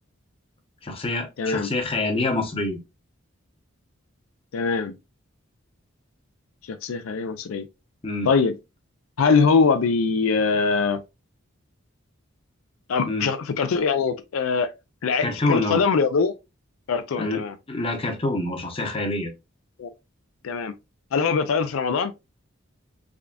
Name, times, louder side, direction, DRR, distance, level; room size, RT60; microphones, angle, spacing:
voice 1, 0.8-2.8 8.0-8.3 13.1-13.3 15.2-15.8 17.2-17.4 17.7-19.3, left 2 dB, 25° left, 0.8 m, -26 dB
voice 2, 1.4-1.7 4.5-5.0 6.7-7.7 8.2-8.5 9.2-11.0 12.9-14.7 15.0-16.3 16.9-17.6 19.8-19.9 20.4-20.7 21.1-22.1, left 5 dB, 75° left, 0.4 m, -22 dB
3.6 x 3.3 x 2.4 m
head